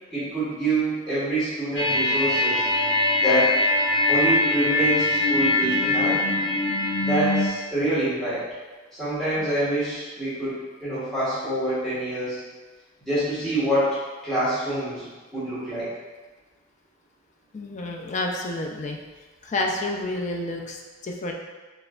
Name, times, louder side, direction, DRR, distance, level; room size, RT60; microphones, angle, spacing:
voice 1, 0.1-2.7 3.2-3.5 4.1-6.2 7.1-8.4 8.9-10.5 10.8-12.4 13.0-13.9 14.2-15.1 15.3-15.9, right 1 dB, ahead, -14 dB, 1.5 m, -26 dB
sound 1, 1.8-7.5, left 2 dB, 75° left, 0.9 m, -22 dB
voice 2, 17.5-19.0 19.4-21.3, left 2 dB, 35° left, 1 dB, 0.4 m, -29 dB
4.3 x 3.3 x 2.4 m, 1.3 s
head